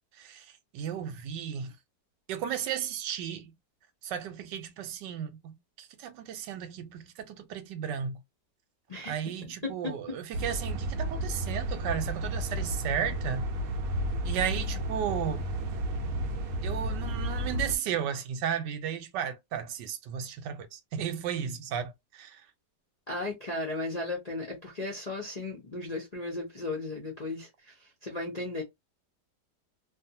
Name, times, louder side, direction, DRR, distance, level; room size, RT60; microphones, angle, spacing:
voice 1, 0.2-1.7 2.3-3.5 4.0-8.2 9.1-13.5 14.2-15.5 16.6-22.4, right 8 dB, 85° right, 1.2 m, -34 dB
voice 2, 8.9-10.0 23.1-28.6, left 2 dB, 45° left, 0.5 m, -36 dB
sound 1, 10.3-17.8, right 1 dB, 65° right, 0.9 m, -32 dB
2.6 x 2.5 x 2.7 m
omnidirectional pair, 1.9 m